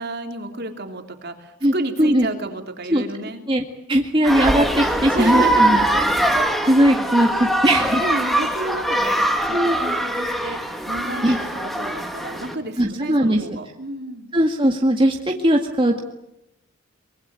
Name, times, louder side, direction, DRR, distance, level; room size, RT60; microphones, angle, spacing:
voice 1, 0.0-3.5 5.1-5.9 8.0-10.6 10.9-14.3, right 2 dB, 50° right, 5 dB, 3.4 m, -31 dB
voice 2, 3.5-5.8 6.7-8.0 9.5-9.8 11.2-11.4 12.8-13.4 14.3-15.2 15.4-16.0, right 1 dB, 25° right, 2 dB, 1.9 m, -19 dB
sound 1, 4.2-12.5, right 1 dB, ahead, 2.4 m, -22 dB
24.5 x 23.0 x 8.4 m, 0.85 s
head